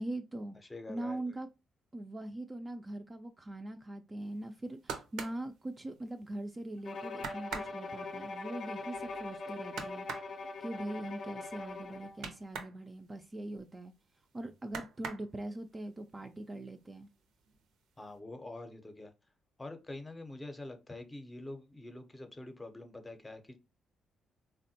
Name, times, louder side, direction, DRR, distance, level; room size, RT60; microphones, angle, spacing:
voice 1, 0.0-0.6 0.9-1.5 1.9-10.1 10.6-13.9 14.3-17.1, right 1 dB, 25° right, 0.3 m, -41 dB
voice 2, 0.6-1.3 18.0-19.1 19.6-23.6, left 2 dB, 15° left, 0.6 m, -45 dB
sound 1, 4.4-6.4 6.8-6.9 7.2-12.8 13.1-14.2 14.6-15.7 16.2-16.8 17.0-17.8 18.1-18.2, right 5 dB, 85° right, 0.6 m, -44 dB
Bowed string instrument, 6.8-12.2, left 3 dB, 60° left, 0.4 m, -42 dB
3.4 x 2.1 x 2.7 m
cardioid pair, 90°, 0 cm